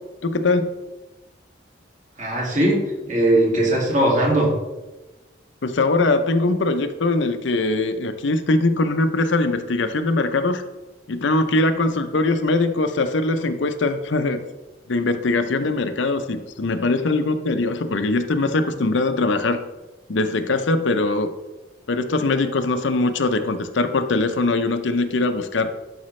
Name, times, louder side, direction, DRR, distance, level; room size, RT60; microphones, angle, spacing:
voice 1, 0.2-0.7 5.6-10.6 11.1-14.4 14.9-19.6 20.1-21.3 21.9-25.7, left 2 dB, 75° left, 9 dB, 0.6 m, -21 dB
voice 2, 2.2-4.5, right 1 dB, 40° right, -2 dB, 2.1 m, -19 dB
11.5 x 5.2 x 3.2 m, 1.1 s
head